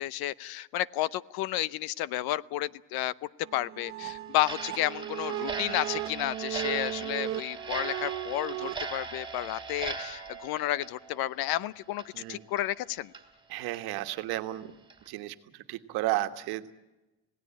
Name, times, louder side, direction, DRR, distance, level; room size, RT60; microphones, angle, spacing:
voice 1, 0.0-12.0 12.3-13.1, left 14 dB, 65° left, 20 dB, 0.8 m, -32 dB
sound 1, 3.4-8.8, right 14 dB, 45° right, 0.8 m, -36 dB
Clock, 4.4-11.6 11.9-12.1 12.6-12.7 13.1-13.2 13.7-13.8 14.3-14.4 14.9-15.1, right 4 dB, 10° right, 2.8 m, -39 dB
voice 2, 13.5-14.7 15.1-16.7, right 16 dB, 70° right, 9 dB, 1.6 m, -33 dB
27.5 x 17.5 x 8.9 m, 1.0 s
cardioid pair, 165°, 39 cm